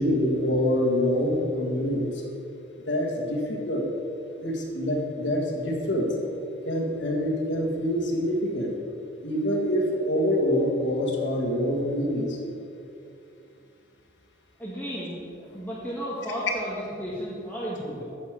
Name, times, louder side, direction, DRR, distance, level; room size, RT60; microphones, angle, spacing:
voice 1, 0.0-2.2 2.8-3.9 4.4-6.1 6.7-8.7 9.2-12.4, equal, 70° left, -1 dB, 1.8 m, -25 dB
voice 2, 14.6-18.0, equal, 10° left, -8 dB, 1.5 m, -33 dB
11.0 x 4.9 x 7.5 m, 2.7 s
head